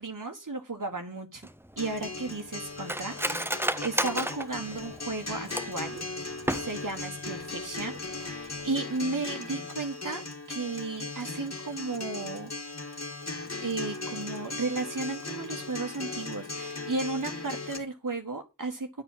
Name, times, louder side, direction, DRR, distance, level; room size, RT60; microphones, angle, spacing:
voice 1, 0.0-6.0 6.5-10.2 10.5-12.5 13.6-19.0, right 3 dB, 70° right, 3 dB, 1.6 m, -34 dB
Cutlery silverware, 1.4-5.9 6.3-7.0 7.4-7.5 7.8-8.2 8.5-8.7, right 1 dB, 5° right, 0.8 m, -33 dB
Acoustic guitar, 1.8-17.8, left 3 dB, 50° left, 2.9 m, -38 dB
11.5 x 4.8 x 7.3 m, 0.25 s
wide cardioid pair, 50°, 33 cm